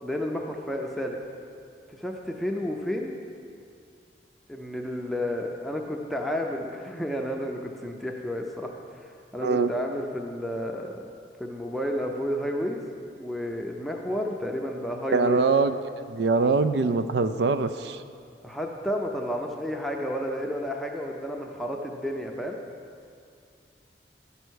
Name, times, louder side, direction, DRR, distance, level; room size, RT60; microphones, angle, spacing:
voice 1, 0.0-1.2 1.9-3.1 4.5-11.1 11.4-12.8 13.1-15.4 18.4-22.6, equal, ahead, 0 dB, 0.5 m, -31 dB
voice 2, 15.1-18.0, right 4 dB, 70° right, 11 dB, 0.4 m, -23 dB
11.5 x 5.6 x 6.3 m, 2.4 s
head